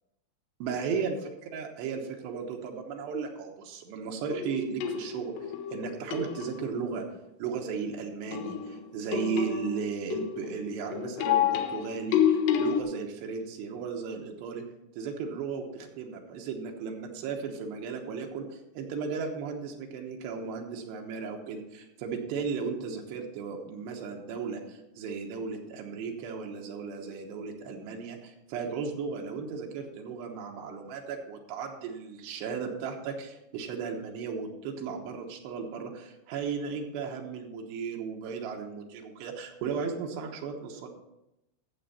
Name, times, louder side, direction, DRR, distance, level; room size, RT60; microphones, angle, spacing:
voice 1, 0.6-1.2 1.4-7.0 7.4-14.6 15.0-40.9, right 5 dB, 80° right, 2 dB, 3.2 m, -35 dB
sound 1, 4.3-6.8 8.3-12.8, left 9 dB, 90° left, 3.1 m, -29 dB
12.5 x 7.8 x 4.2 m, 0.90 s
omnidirectional pair, 4.9 m